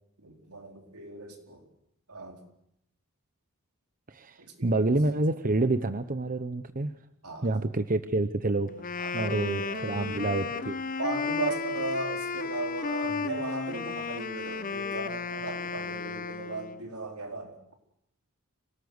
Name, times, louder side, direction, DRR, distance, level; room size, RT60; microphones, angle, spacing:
voice 1, 0.2-1.6 2.1-2.4 4.6-4.8 7.2-7.5 9.0-10.1 11.0-17.5, right 2 dB, 80° right, 3 dB, 4.4 m, -36 dB
voice 2, 4.1-6.9 7.4-8.7 9.1-10.8 13.1-13.3, right 2 dB, 40° right, 10 dB, 0.9 m, -28 dB
Wind instrument woodwind instrument, 8.7-16.8, left 5 dB, 40° left, 0.8 m, -34 dB
26.0 x 18.5 x 8.0 m, 0.78 s
head